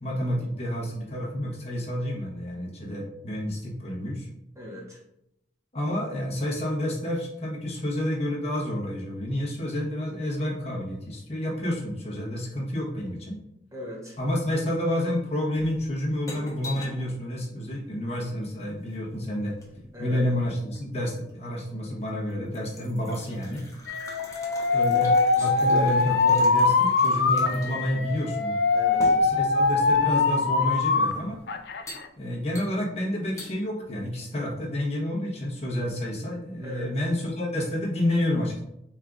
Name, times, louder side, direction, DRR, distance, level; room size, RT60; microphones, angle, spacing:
voice 1, 0.0-4.3 5.7-13.4 14.2-19.6 20.0-23.6 24.7-28.6 29.2-31.4 32.2-38.6, left 1 dB, 35° left, -3 dB, 1.1 m, -29 dB
voice 2, 4.6-5.0 13.7-14.2 19.9-20.2 25.4-25.5 25.7-25.8 26.6-26.7 28.7-29.1 36.6-36.9, equal, 15° right, -2 dB, 0.7 m, -37 dB
sound 1, 15.6-17.1 18.6-20.0 20.7-21.4 21.9-22.0 22.3-27.9 28.2-28.3 29.0-30.0 30.8-31.4 31.9-32.1 32.5-33.0 33.4-33.5, left 1 dB, 20° left, 0.8 m, -43 dB
Alarm, 23.9-31.1 31.5-32.0, left 4 dB, 65° left, 0.4 m, -22 dB
4.5 x 3.6 x 2.4 m, 0.81 s
head